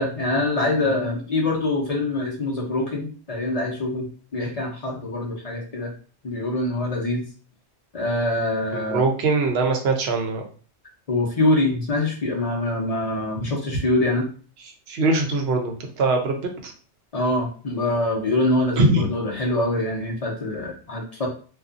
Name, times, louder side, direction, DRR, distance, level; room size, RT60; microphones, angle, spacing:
voice 1, 0.0-4.1 4.3-5.9 6.2-7.2 7.9-9.0 11.1-14.3 17.1-21.3, left 2 dB, 40° left, -1 dB, 0.6 m, -24 dB
voice 2, 8.7-10.4 14.9-16.7 18.8-19.1, right 3 dB, 65° right, 3 dB, 0.8 m, -22 dB
2.5 x 2.3 x 2.4 m, 0.40 s
omnidirectional pair, 1.2 m